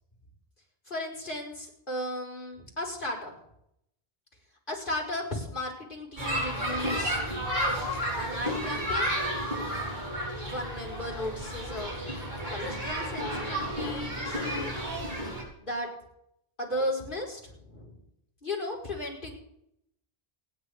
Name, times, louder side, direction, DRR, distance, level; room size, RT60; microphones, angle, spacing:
voice 1, 0.9-3.4 4.7-7.2 8.2-9.1 10.4-11.9 12.5-14.7 15.6-15.9 16.6-18.0 18.4-19.3, left 1 dB, 55° left, -3 dB, 5.1 m, -35 dB
sound 1, 6.2-15.4, equal, 45° right, 4.8 m, -32 dB
29.5 x 10.5 x 3.6 m, 0.76 s
omnidirectional pair, 1.0 m